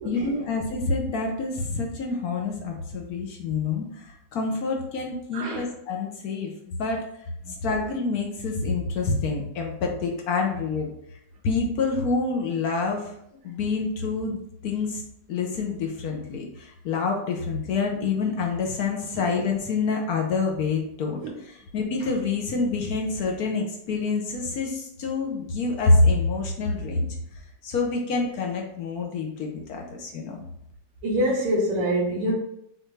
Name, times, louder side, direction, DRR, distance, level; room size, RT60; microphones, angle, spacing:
voice 1, 0.0-7.0 7.6-10.9 11.4-13.1 13.4-15.0 15.3-21.2 21.7-27.1 27.6-30.4, left 3 dB, 65° left, 1 dB, 0.9 m, -27 dB
voice 2, 5.3-5.7 7.4-7.5 31.0-32.3, equal, 80° right, -6 dB, 1.9 m, -25 dB
6.5 x 2.5 x 3.2 m, 0.75 s
omnidirectional pair, 2.3 m